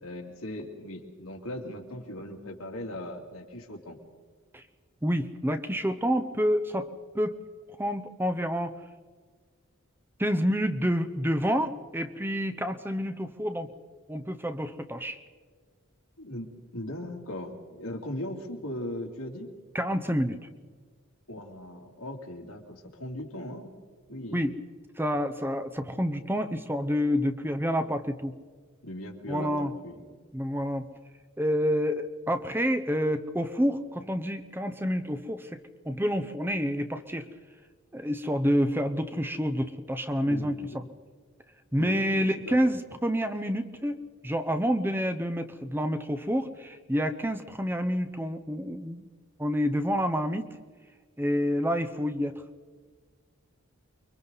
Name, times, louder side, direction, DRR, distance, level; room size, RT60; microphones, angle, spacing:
voice 1, 0.0-4.0 16.2-16.5 16.7-19.5 21.3-23.7 24.1-24.5 28.8-30.2 40.3-40.8 41.8-42.7, left 1 dB, 85° left, 0 dB, 2.9 m, -39 dB
voice 2, 5.0-7.4 7.8-8.8 10.2-13.7 14.1-15.2 19.7-20.4 24.3-24.5 25.0-28.3 29.3-29.7 30.3-30.9 31.4-37.3 37.9-40.6 41.7-44.0 44.2-49.1 49.4-50.5 51.2-52.4, equal, 10° right, 9 dB, 0.7 m, -28 dB
29.0 x 23.5 x 4.1 m, 1.5 s
head